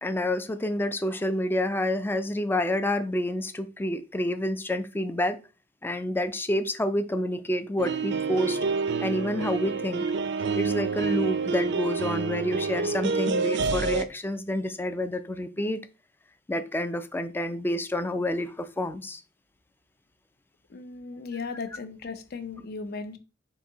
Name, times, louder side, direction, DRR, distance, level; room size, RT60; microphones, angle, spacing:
voice 1, 0.0-5.4 5.8-8.6 9.0-10.0 10.6-15.8 16.5-19.2, left 1 dB, 10° left, 0.4 m, -28 dB
sound 1, 7.8-14.0, right 4 dB, 65° right, 0.5 m, -28 dB
voice 2, 20.7-23.2, left 4 dB, 55° left, 0.6 m, -36 dB
4.0 x 2.8 x 4.6 m
head